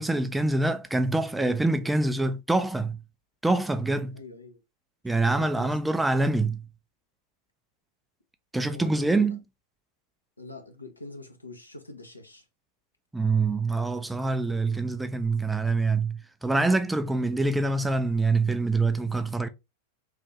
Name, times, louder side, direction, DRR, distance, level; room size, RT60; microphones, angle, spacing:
voice 1, 0.0-3.0 3.4-4.2 5.0-6.6 8.5-9.4 13.1-19.5, right 3 dB, 5° right, 0.3 m, -25 dB
voice 2, 1.3-1.8 4.1-4.6 5.2-5.8 8.6-9.2 10.4-12.4, left 2 dB, 85° left, 0.6 m, -45 dB
3.2 x 2.5 x 2.9 m
figure-of-eight pair, 90°, 0 cm